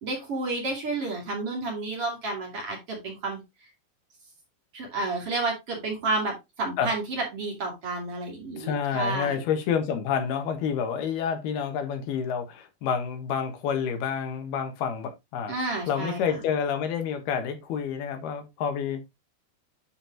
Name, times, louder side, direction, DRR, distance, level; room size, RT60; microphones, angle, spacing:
voice 1, 0.0-3.4 4.7-9.4 15.5-16.4, right 3 dB, 40° right, 3.2 m, -31 dB
voice 2, 8.6-15.6 15.9-19.1, left 7 dB, 85° left, 3.4 m, -28 dB
10.0 x 5.3 x 2.9 m
omnidirectional pair, 4.4 m